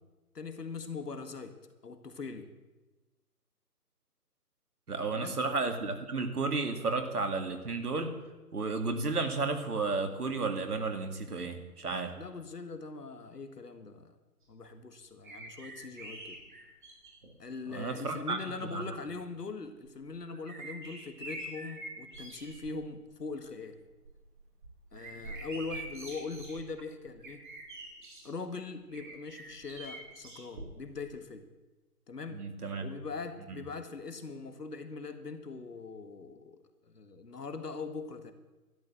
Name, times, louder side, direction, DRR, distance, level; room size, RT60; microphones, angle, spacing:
voice 1, 0.3-1.6 1.8-2.5 5.1-5.4 12.2-14.2 14.5-16.4 17.4-23.8 24.9-27.4 28.2-31.4 32.1-32.4 32.8-38.3, left 4 dB, 75° left, 8 dB, 1.9 m, -41 dB
voice 2, 4.9-8.1 8.5-12.1 17.7-18.9 32.3-32.9 33.5-33.6, right 3 dB, 70° right, 6 dB, 2.2 m, -33 dB
sound 1, 15.2-17.3 18.2-18.3 19.8-22.7 23.1-23.5 23.9-28.3 28.9-31.1 31.3-31.4, right 2 dB, 30° right, 2.7 m, -45 dB
12.5 x 11.0 x 7.5 m, 1.2 s
figure-of-eight pair, 165°, 47 cm